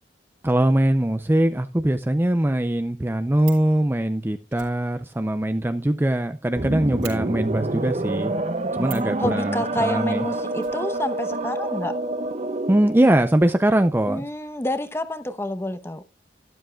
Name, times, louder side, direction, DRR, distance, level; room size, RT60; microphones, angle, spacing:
voice 1, 0.4-8.3 8.7-10.2 12.7-14.2, right 1 dB, 15° right, 9 dB, 0.5 m, -21 dB
Fire, 3.4-3.7 4.5-6.3 6.5-6.6 7.0-7.2 8.8-9.2 10.6-11.5 11.7-11.8 12.0-12.1, right 11 dB, 85° right, 4.2 m, -42 dB
sound 1, 6.6-13.0, right 2 dB, 40° right, 1.0 m, -27 dB
voice 2, 9.2-11.9 14.1-16.0, left 1 dB, 15° left, 10 dB, 0.9 m, -28 dB
12.5 x 11.5 x 2.3 m, 0.27 s
head